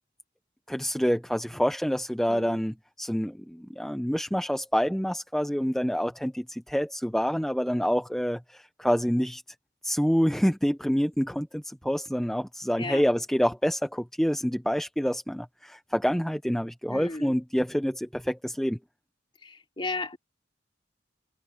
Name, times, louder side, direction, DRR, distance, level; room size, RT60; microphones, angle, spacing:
voice 1, 0.7-9.4 9.8-18.8, equal, ahead, 0.8 m, -27 dB
voice 2, 2.3-2.6 12.8-13.0 16.9-17.3 19.4-20.2, left 3 dB, 25° left, 3.3 m, -35 dB
head